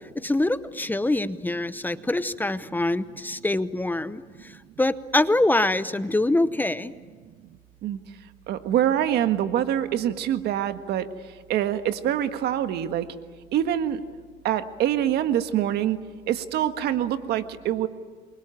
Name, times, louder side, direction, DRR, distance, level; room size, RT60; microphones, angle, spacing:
voice 1, 0.2-4.2 4.8-6.9, left 2 dB, 10° left, 14 dB, 0.8 m, -24 dB
voice 2, 8.5-11.1 11.5-13.1 13.5-14.0 14.4-16.0 16.3-17.9, right 11 dB, 75° right, 9 dB, 1.6 m, -25 dB
28.5 x 23.0 x 9.1 m, 1.5 s
cardioid pair, 110°, 17 cm